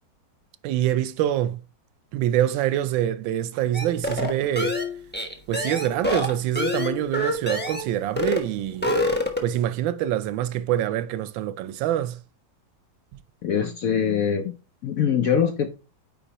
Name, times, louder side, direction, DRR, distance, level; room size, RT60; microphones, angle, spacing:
voice 1, 0.6-1.6 2.1-4.8 5.5-8.9 9.4-12.2, right 12 dB, 85° right, 1.3 m, -25 dB
sound 1, 3.7-7.9 8.2-8.5 8.7-9.6, left 1 dB, 10° left, 0.6 m, -26 dB
voice 2, 13.4-14.5 14.8-15.7, left 7 dB, 70° left, 0.8 m, -23 dB
9.1 x 3.9 x 2.9 m
omnidirectional pair, 2.1 m